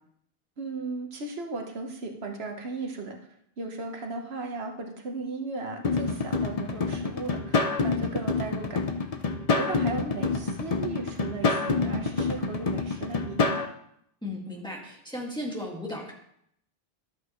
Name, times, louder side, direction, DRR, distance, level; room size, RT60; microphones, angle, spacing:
voice 1, 0.6-3.2 3.6-8.8 9.6-13.7, right 3 dB, 85° right, 3 dB, 1.4 m, -36 dB
sound 1, 5.8-13.7, left 4 dB, 40° left, 0.8 m, -27 dB
voice 2, 14.2-16.1, left 1 dB, 5° left, -3 dB, 2.0 m, -35 dB
12.5 x 8.3 x 3.1 m, 0.72 s
omnidirectional pair, 1.0 m